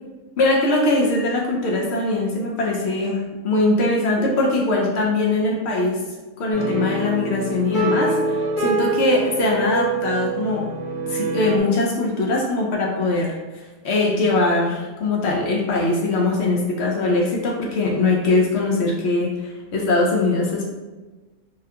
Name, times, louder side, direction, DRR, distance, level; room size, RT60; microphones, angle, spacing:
voice 1, 0.4-6.0 6.4-10.7 11.1-13.4 13.8-20.8, left 2 dB, 75° left, -2 dB, 0.6 m, -21 dB
sound 1, 6.5-11.6, right 2 dB, 30° left, 0.6 m, -25 dB
3.5 x 2.2 x 2.7 m, 1.2 s
omnidirectional pair, 1.7 m